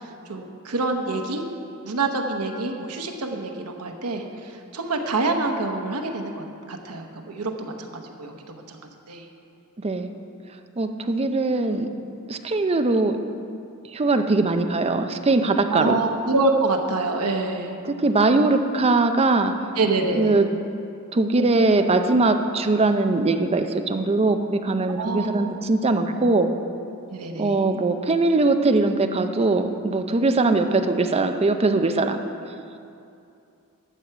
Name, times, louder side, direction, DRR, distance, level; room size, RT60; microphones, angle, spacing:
voice 1, 0.3-1.4 1.8-4.3 4.7-8.8 9.1-9.3 15.7-17.8 19.8-20.4 25.0-25.5 27.1-27.6, right 3 dB, 90° right, 4 dB, 1.0 m, -26 dB
voice 2, 9.8-10.1 10.8-11.9 12.3-13.2 13.9-16.0 17.8-19.5 20.2-20.5 21.1-26.5 27.4-32.2, right 3 dB, 25° right, 7 dB, 0.5 m, -21 dB
12.0 x 4.7 x 7.7 m, 2.6 s
head